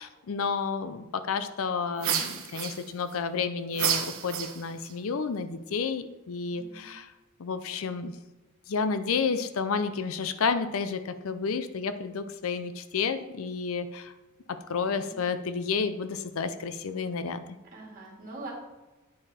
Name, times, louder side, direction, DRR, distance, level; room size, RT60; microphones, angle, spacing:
voice 1, 0.0-7.1 7.4-8.1 8.7-14.1 14.5-17.4, left 5 dB, 65° left, 11 dB, 0.5 m, -31 dB
sound 1, 2.0-3.2 3.7-4.9, right 8 dB, 70° right, 0.9 m, -30 dB
voice 2, 6.5-6.9 14.9-15.2 17.6-18.5, right 2 dB, 40° right, -3 dB, 2.5 m, -44 dB
9.4 x 5.0 x 4.3 m, 1.1 s
head